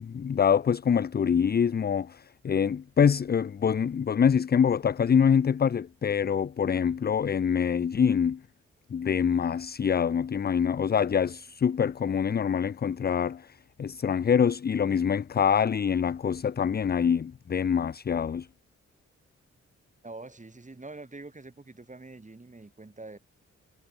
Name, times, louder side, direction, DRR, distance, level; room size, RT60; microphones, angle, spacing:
voice 1, 0.0-8.4 8.9-18.5, left 7 dB, 35° left, 0.5 m, -25 dB
voice 2, 20.0-23.2, right 2 dB, 25° right, 6.9 m, -45 dB
cardioid pair, 60°, 29 cm